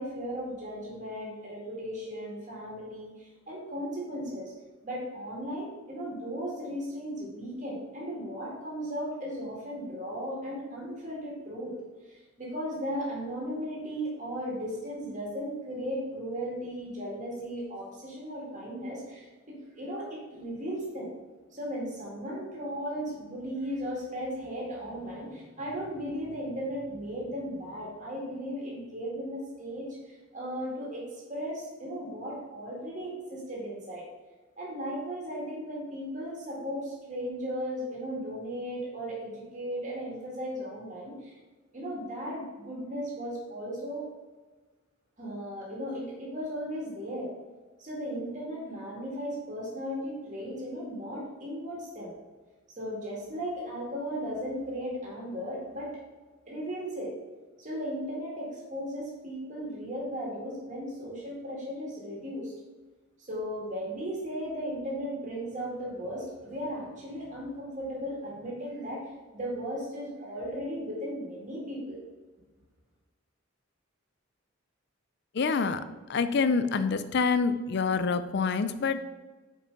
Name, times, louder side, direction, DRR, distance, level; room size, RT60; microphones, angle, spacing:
voice 1, 0.0-4.5 4.8-11.8 12.0-19.3 19.7-21.1 21.5-34.0 34.6-41.4 41.7-44.1 45.2-47.3 47.8-52.1 52.7-55.9 56.5-57.1 57.6-62.5 63.2-72.0, equal, 40° right, -4 dB, 2.0 m, -36 dB
voice 2, 75.3-75.8 76.1-79.0, left 5 dB, 55° left, 12 dB, 0.4 m, -26 dB
5.4 x 5.1 x 5.3 m, 1.3 s
head